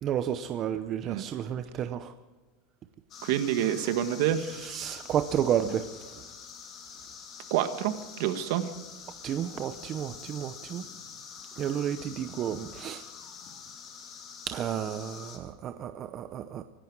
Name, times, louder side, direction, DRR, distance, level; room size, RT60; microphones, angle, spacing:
voice 1, 0.0-2.1 4.4-5.9 9.2-10.8 11.6-13.0 14.5-16.6, right 9 dB, 30° right, 9 dB, 0.7 m, -31 dB
sound 1, 3.1-15.4, left 6 dB, 30° left, 2.6 m, -46 dB
voice 2, 3.2-4.5 7.5-8.7, right 11 dB, 60° right, 9 dB, 1.5 m, -28 dB
25.0 x 11.5 x 4.8 m, 1.3 s
supercardioid pair, 160°, 0 cm